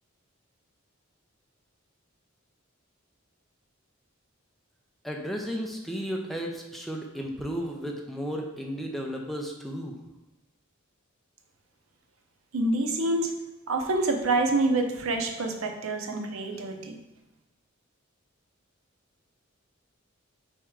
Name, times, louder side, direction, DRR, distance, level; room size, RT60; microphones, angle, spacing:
voice 1, 5.0-9.9, equal, ahead, 0 dB, 0.5 m, -34 dB
voice 2, 12.5-13.3 13.7-17.0, right 2 dB, 85° right, 4 dB, 0.6 m, -27 dB
3.5 x 3.1 x 4.6 m, 0.94 s
head